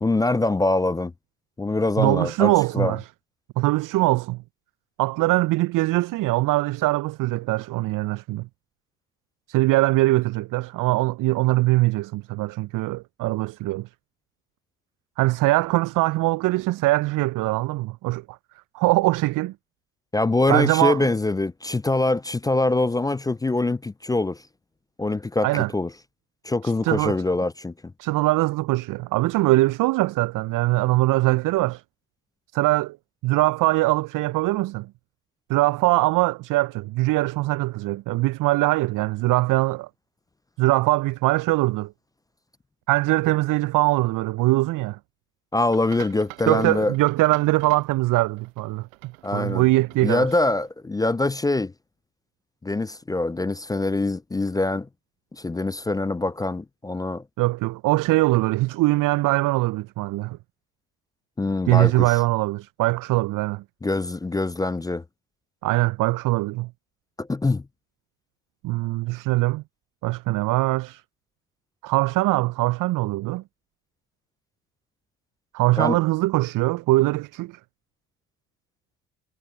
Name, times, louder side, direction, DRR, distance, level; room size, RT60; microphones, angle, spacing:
voice 1, 0.0-1.1 1.6-3.0 20.1-24.4 25.0-25.9 26.4-27.7 45.5-46.9 49.2-49.7 50.0-51.7 52.6-54.9 55.3-57.2 61.4-62.1 63.8-65.0 67.2-67.6 75.8-76.0, left 2 dB, 10° left, 0.5 m, -24 dB
voice 2, 2.0-3.1 3.6-4.4 5.0-8.5 9.5-13.9 15.2-18.4 18.7-19.5 20.5-21.1 25.4-25.7 26.6-27.2 28.0-31.8 32.5-33.0 33.2-34.9 35.5-39.9 40.6-41.9 42.9-45.0 46.5-50.3 57.4-60.4 61.7-63.6 65.6-66.7 68.6-69.6 70.0-71.0 71.8-73.4 75.5-77.6, right 19 dB, 50° right, 0.7 m, -22 dB
sound 1, 45.6-50.7, right 26 dB, 70° right, 7.8 m, -46 dB
figure-of-eight pair, 55°, 41 cm